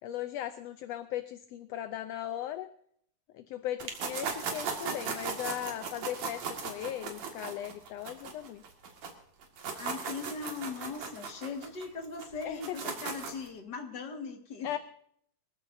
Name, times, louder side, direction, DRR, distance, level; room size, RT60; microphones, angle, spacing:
voice 1, 0.0-2.7 3.3-8.6 12.4-12.8 14.6-14.8, left 12 dB, 75° left, 10 dB, 1.6 m, -38 dB
sound 1, 3.8-9.1 9.4-13.5, right 5 dB, 65° right, 3.2 m, -37 dB
voice 2, 9.7-14.8, left 4 dB, 40° left, 3 dB, 2.2 m, -40 dB
23.5 x 15.0 x 2.7 m, 0.67 s
omnidirectional pair, 3.4 m